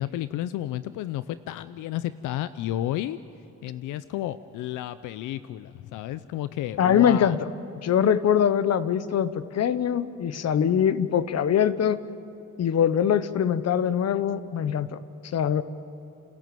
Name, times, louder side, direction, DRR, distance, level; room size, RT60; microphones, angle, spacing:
voice 1, 0.0-3.2 3.6-7.4, left 13 dB, 90° left, 14 dB, 0.6 m, -32 dB
voice 2, 6.8-7.4 7.8-12.0 12.6-15.0 15.3-15.6, left 8 dB, 55° left, 15 dB, 1.0 m, -23 dB
29.5 x 13.5 x 9.1 m, 2.8 s
cardioid pair, 90°, 30 cm